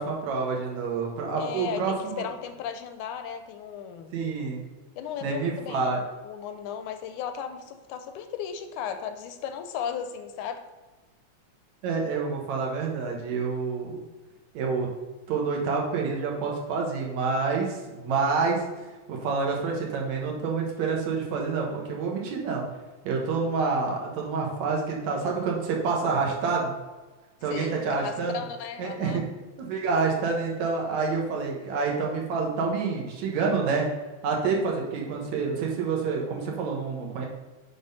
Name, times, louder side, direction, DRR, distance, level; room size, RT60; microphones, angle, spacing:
voice 1, 0.0-2.2 4.1-4.6 5.2-6.0 11.8-14.1 14.5-14.9 15.3-18.6 19.1-22.6 23.0-26.7 27.4-28.4 28.8-29.2 29.6-33.9 34.2-37.3, right 4 dB, 70° right, -1 dB, 2.4 m, -28 dB
voice 2, 1.4-4.1 5.0-10.6 27.5-29.2, left 8 dB, 80° left, 8 dB, 2.0 m, -36 dB
7.8 x 3.8 x 5.5 m, 1.2 s
omnidirectional pair, 3.5 m